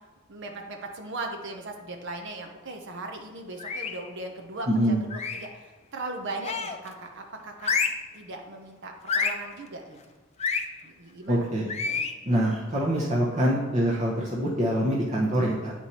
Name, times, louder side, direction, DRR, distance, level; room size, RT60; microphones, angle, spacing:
voice 1, 0.3-7.7 8.1-10.0 10.8-11.5 11.9-12.1, right 2 dB, 60° right, 3 dB, 0.8 m, -38 dB
sound 1, 3.6-4.1 5.1-5.5 6.4-6.9 7.6-8.1 9.1-9.5 10.4-10.7 11.7-12.2, left 5 dB, 30° left, 0.5 m, -28 dB
voice 2, 4.7-5.0 11.3-11.7 12.2-15.7, right 1 dB, 35° right, -5 dB, 1.0 m, -25 dB
8.5 x 4.5 x 4.2 m, 1.3 s
head